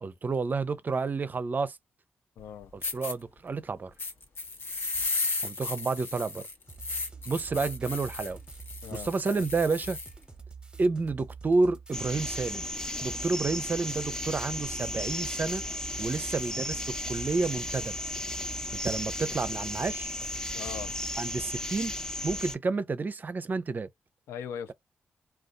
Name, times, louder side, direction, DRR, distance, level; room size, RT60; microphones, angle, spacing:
voice 1, 0.0-1.8 2.7-3.9 5.4-6.5 7.3-8.4 8.9-10.0 10.8-12.7 13.0-15.6 16.0-18.0 18.8-20.1 21.2-21.9 22.2-23.9, right 3 dB, 45° right, 0.6 m, -30 dB
voice 2, 2.4-2.7 8.8-9.1 20.5-20.9 24.3-24.7, left 8 dB, 85° left, 0.4 m, -39 dB
sound 1, 2.4-2.5 2.8-3.1 4.0-10.1, left 3 dB, 60° left, 1.1 m, -34 dB
sound 2, 6.7-21.1, right 5 dB, 20° right, 1.0 m, -47 dB
sound 3, 11.9-22.5, left 1 dB, 15° left, 0.8 m, -35 dB
2.5 x 2.3 x 3.7 m
supercardioid pair, 55°, 4 cm